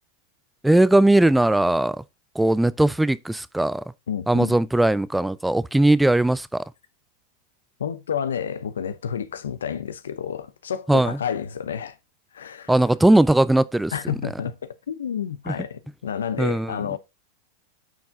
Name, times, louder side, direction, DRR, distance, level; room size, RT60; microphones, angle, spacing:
voice 1, 0.6-2.0 2.4-3.8 4.3-6.6 10.9-11.2 12.7-13.9 15.5-15.6 16.4-16.7, right 1 dB, 5° right, 0.4 m, -19 dB
voice 2, 4.1-4.5 7.8-12.0 12.3-12.8 13.9-17.0, left 8 dB, 85° left, 0.7 m, -30 dB
9.4 x 4.7 x 3.6 m
hypercardioid pair, 100°, 0 cm